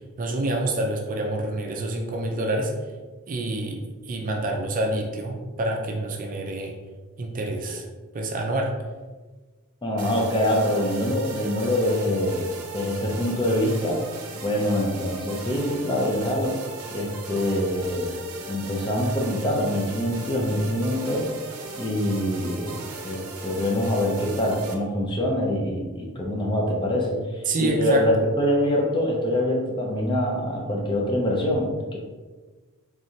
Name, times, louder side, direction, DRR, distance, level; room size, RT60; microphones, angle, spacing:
voice 1, 0.2-2.7 3.3-6.7 7.2-7.8 8.1-8.7 27.5-28.1, right 1 dB, 40° right, 2 dB, 0.5 m, -27 dB
voice 2, 9.8-14.1 14.4-16.6 16.9-18.2 18.5-21.3 21.8-22.8 23.0-32.0, left 1 dB, 20° left, -1 dB, 0.6 m, -25 dB
sound 1, 10.0-24.7, right 3 dB, 90° right, 0.6 m, -38 dB
3.6 x 3.2 x 2.7 m, 1.3 s
head